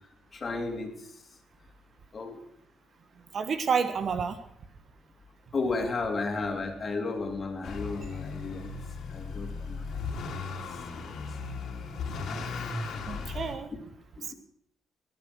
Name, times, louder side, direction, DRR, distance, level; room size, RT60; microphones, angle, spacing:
voice 1, 0.3-1.0 2.1-2.4 5.5-8.7 9.1-10.3 10.7-11.2 12.6-12.7 14.1-14.3, left 3 dB, 40° left, 4 dB, 3.0 m, -34 dB
voice 2, 3.3-4.4 13.1-13.7 14.2-14.3, right 6 dB, 50° right, 10 dB, 1.5 m, -29 dB
Motor vehicle (road) / Accelerating revving vroom, 7.6-13.5, left 4 dB, 70° left, 3.2 m, -36 dB
21.0 x 8.5 x 6.2 m, 0.72 s
cardioid pair, 90°, 0 cm